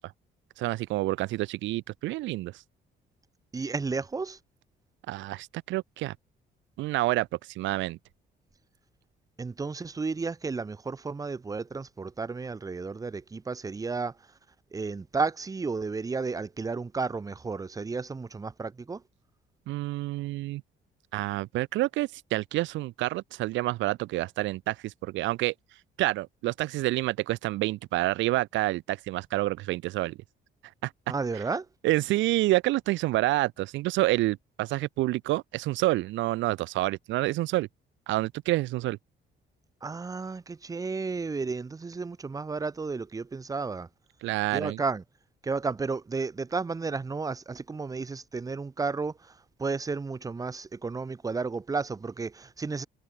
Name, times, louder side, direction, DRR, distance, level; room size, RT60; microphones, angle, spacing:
voice 1, 0.6-2.5 5.1-6.1 6.8-7.3 7.6-8.0 19.7-20.6 21.1-25.5 26.0-30.2 30.8-30.9 31.8-37.7 38.1-39.0 44.2-44.8, right 18 dB, 85° right, 0.4 m, -28 dB
voice 2, 3.5-4.4 9.4-14.1 14.7-19.0 31.1-31.7 39.8-43.9 44.5-45.0 45.4-49.3 49.6-52.9, right 4 dB, 20° right, 1.6 m, -32 dB
cardioid pair, 165°, 19 cm